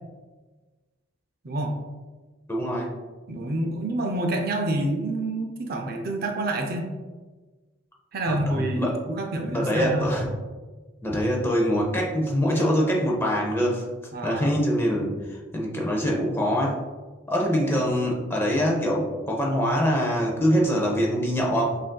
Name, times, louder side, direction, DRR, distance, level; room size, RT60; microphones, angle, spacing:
voice 1, 2.5-2.9 8.3-9.0 9.5-10.3 11.0-13.8 14.2-16.8 17.3-21.8, equal, 10° left, -2 dB, 0.5 m, -24 dB
voice 2, 3.3-6.9 8.1-10.1 14.1-14.4, right 1 dB, 50° right, 2 dB, 0.5 m, -27 dB
6.1 x 2.6 x 2.2 m, 1.3 s
head